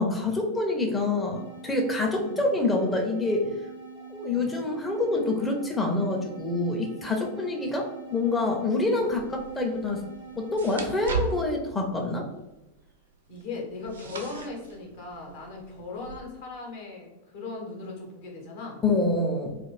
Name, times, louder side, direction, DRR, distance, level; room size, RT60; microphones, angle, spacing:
voice 1, 0.0-3.5 4.1-10.0 10.4-12.3 18.8-19.6, left 2 dB, 10° left, 1 dB, 0.5 m, -26 dB
sound 1, 1.3-11.7, right 5 dB, 70° left, 0.9 m, -44 dB
sound 2, 9.0-16.2, right 4 dB, 65° right, 0.4 m, -39 dB
voice 2, 13.3-18.8, left 3 dB, 50° left, -1 dB, 0.9 m, -38 dB
2.5 x 2.4 x 3.2 m, 0.97 s
figure-of-eight pair, 90°, 0 cm